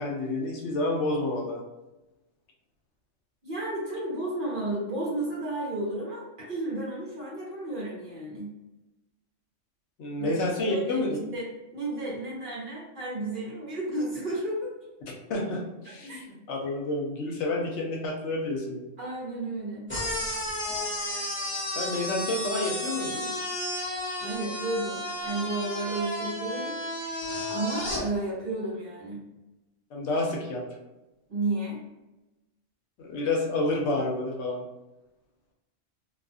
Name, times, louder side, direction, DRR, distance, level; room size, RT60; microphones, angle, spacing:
voice 1, 0.0-1.6 10.0-11.2 15.3-18.8 21.7-23.3 29.9-30.6 33.0-34.6, left 2 dB, 70° left, 0 dB, 0.9 m, -29 dB
voice 2, 3.4-8.5 10.2-10.4 10.6-11.5 11.7-14.7 16.1-16.2 19.0-19.9 24.2-26.8 27.5-29.2 31.3-31.8, right 2 dB, 50° right, -5 dB, 0.9 m, -32 dB
sound 1, 19.9-28.0, left 1 dB, 10° left, 0.9 m, -32 dB
2.4 x 2.3 x 2.6 m, 1.0 s
omnidirectional pair, 1.3 m